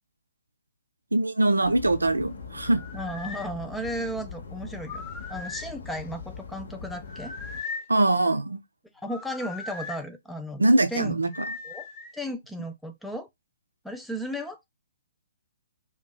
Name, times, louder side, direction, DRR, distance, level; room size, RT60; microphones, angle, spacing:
voice 1, 1.1-2.8 7.9-8.6 10.6-11.3, right 2 dB, 75° right, 0.4 m, -22 dB
sound 1, 1.6-7.6, left 5 dB, 55° left, 0.7 m, -41 dB
sound 2, 2.7-3.5 4.8-5.7 7.0-7.9 9.1-10.0 11.3-12.2, left 4 dB, 15° left, 0.8 m, -38 dB
voice 2, 2.9-5.0 5.3-7.3 8.9-10.6 10.9-11.2 11.6-11.9 12.1-13.3 13.8-14.7, equal, ahead, 0.3 m, -34 dB
2.6 x 2.3 x 2.2 m
figure-of-eight pair, 125°, 0 cm